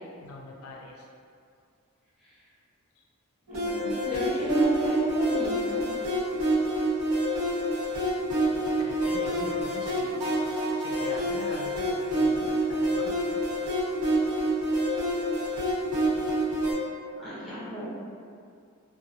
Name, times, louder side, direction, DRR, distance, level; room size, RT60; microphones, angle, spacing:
voice 1, 0.2-1.1 3.8-4.5 8.0-8.1 8.8-10.2 10.7-13.4, left 3 dB, 75° left, -1 dB, 0.3 m, -41 dB
voice 2, 3.5-4.1 4.4-5.9 17.2-17.9, right 1 dB, ahead, -11 dB, 0.7 m, -32 dB
sound 1, 3.5-16.7, right 1 dB, 75° right, 1.0 m, -27 dB
2.7 x 2.1 x 2.6 m, 2.3 s
head